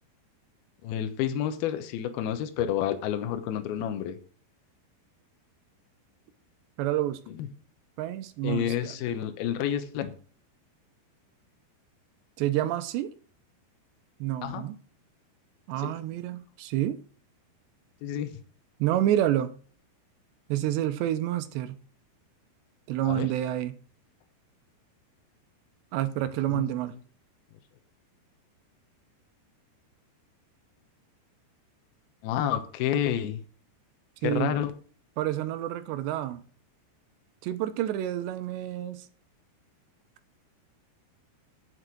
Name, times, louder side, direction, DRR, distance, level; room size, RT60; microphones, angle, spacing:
voice 1, 0.8-4.2 7.3-7.5 8.4-10.1 14.4-14.6 15.8-15.9 18.0-18.3 23.0-23.3 26.5-26.7 32.2-33.4 34.2-34.7, left 10 dB, 75° left, 2.6 m, -29 dB
voice 2, 6.8-7.2 8.0-9.0 12.4-13.1 14.2-14.8 15.7-17.0 18.8-19.6 20.5-21.8 22.9-23.8 25.9-27.0 34.2-34.6 35.2-36.4 37.4-39.1, right 13 dB, 85° right, 2.9 m, -28 dB
8.9 x 7.8 x 6.0 m
omnidirectional pair, 5.1 m